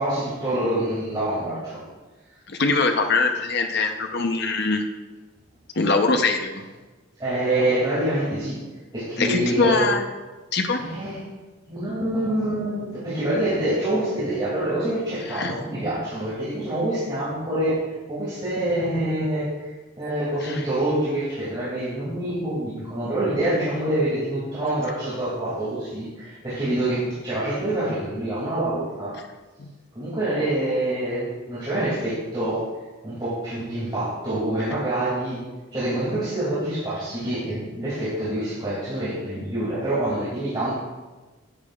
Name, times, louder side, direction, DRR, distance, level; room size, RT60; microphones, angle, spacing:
voice 1, 0.0-1.8 7.2-8.6 8.9-9.9 10.8-11.2 11.7-29.1 29.9-32.6 33.0-35.4 35.7-40.8, right 1 dB, 25° right, -12 dB, 2.6 m, -26 dB
voice 2, 2.5-4.8 5.7-6.7 9.2-10.0 10.5-10.8 15.3-15.5 20.4-20.6 29.6-29.7, left 3 dB, 55° left, 5 dB, 0.8 m, -23 dB
10.5 x 8.9 x 2.4 m, 1.2 s
head